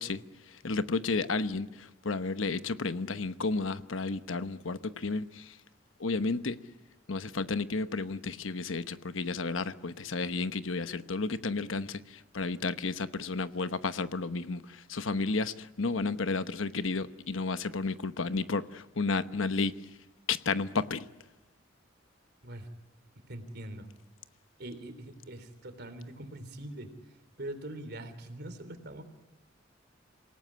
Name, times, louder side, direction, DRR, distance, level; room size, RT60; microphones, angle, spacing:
voice 1, 0.0-5.6 6.0-6.6 7.1-19.8 20.3-21.1, left 3 dB, 90° left, 12 dB, 1.0 m, -32 dB
voice 2, 23.3-23.9 24.6-29.0, right 1 dB, 55° right, 10 dB, 3.4 m, -43 dB
27.5 x 18.0 x 9.9 m, 1.1 s
head